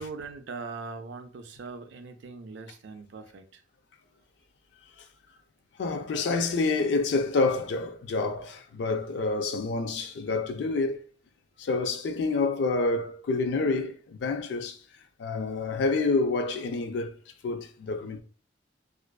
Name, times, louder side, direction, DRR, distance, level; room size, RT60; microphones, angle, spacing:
voice 1, 0.0-3.6, right 4 dB, 70° right, 0.4 m, -41 dB
voice 2, 5.8-11.0 11.6-14.8 15.2-17.1 17.4-18.2, left 3 dB, 65° left, 0.3 m, -28 dB
2.4 x 2.2 x 2.2 m
head